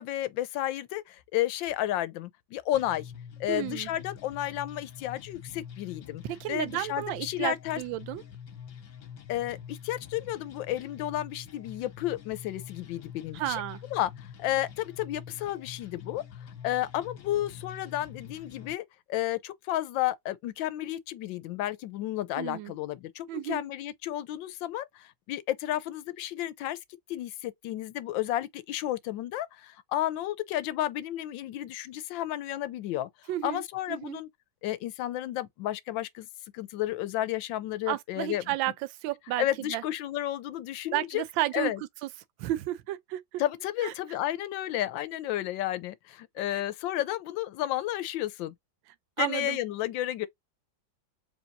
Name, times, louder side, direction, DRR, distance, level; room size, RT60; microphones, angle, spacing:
voice 1, 0.0-3.1 3.4-6.2 6.5-7.8 9.3-13.6 13.9-16.2 16.6-18.8 19.1-26.8 27.1-33.1 33.4-34.3 34.6-36.3 36.5-38.4 39.4-41.2 41.5-41.8 43.4-48.5 49.2-50.3, left 13 dB, 85° left, 1.4 m, -32 dB
sound 1, 2.7-18.7, left 8 dB, 70° left, 1.7 m, -46 dB
voice 2, 3.5-3.9 6.2-8.2 13.3-13.8 22.4-22.7 23.3-23.6 33.3-33.6 33.9-34.2 37.9-38.7 39.0-39.8 40.9-41.7 42.0-42.1 42.4-43.4 43.8-43.9 46.5-46.6 49.2-49.6, right 14 dB, 85° right, 1.3 m, -32 dB
4.6 x 3.1 x 2.6 m
omnidirectional pair, 2.0 m